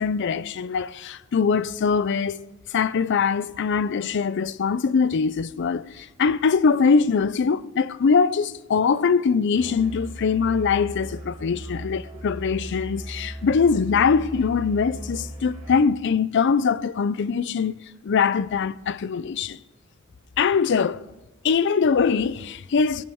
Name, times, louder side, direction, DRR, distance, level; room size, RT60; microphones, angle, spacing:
voice 1, 0.0-2.5 2.7-17.7 18.0-19.6 20.4-21.0 21.4-23.0, left 5 dB, 60° left, 0.4 m, -22 dB
Musical instrument, 9.5-15.9, right 1 dB, 35° right, 2.8 m, -37 dB
17.5 x 10.0 x 3.6 m
head